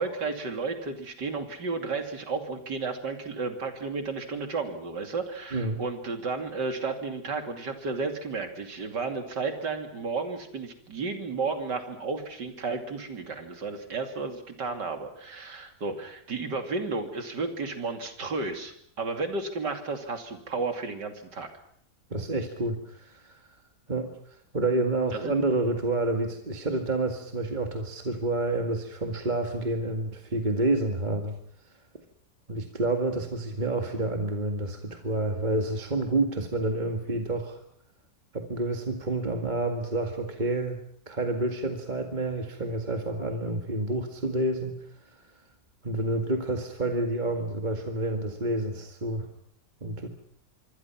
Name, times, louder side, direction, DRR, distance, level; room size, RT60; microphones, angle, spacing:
voice 1, 0.0-21.5 25.1-25.3, right 4 dB, 90° right, 6 dB, 3.3 m, -33 dB
voice 2, 22.1-23.4 23.9-24.1 24.5-31.4 32.5-37.6 38.3-40.8 41.1-44.7 45.8-49.3 49.8-50.1, right 2 dB, 25° right, 4 dB, 2.0 m, -29 dB
26.5 x 24.0 x 5.9 m, 0.67 s
omnidirectional pair, 1.8 m